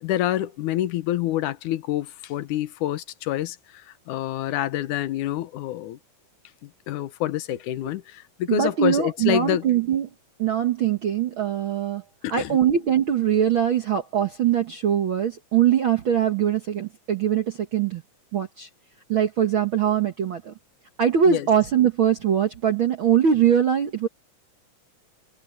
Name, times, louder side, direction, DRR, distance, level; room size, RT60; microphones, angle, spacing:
voice 1, 0.0-6.0 6.6-9.7 12.2-12.6 21.3-21.5, left 13 dB, 75° left, 2.3 m, -27 dB
voice 2, 8.5-10.1 10.4-12.0 12.3-18.0 18.3-18.7 19.1-20.5 21.0-24.1, right 9 dB, 55° right, 1.5 m, -22 dB
omnidirectional pair, 3.8 m